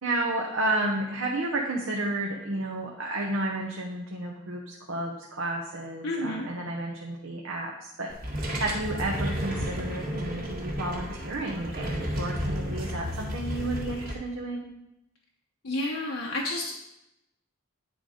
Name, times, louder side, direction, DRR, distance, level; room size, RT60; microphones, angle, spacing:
voice 1, 0.0-14.7, right 2 dB, 85° right, -1 dB, 1.0 m, -32 dB
voice 2, 6.0-6.5 15.6-16.7, left 1 dB, 80° left, -2 dB, 0.9 m, -30 dB
sound 1, 8.1-14.1, equal, 45° right, 1.7 m, -32 dB
9.6 x 3.9 x 4.9 m, 0.86 s
head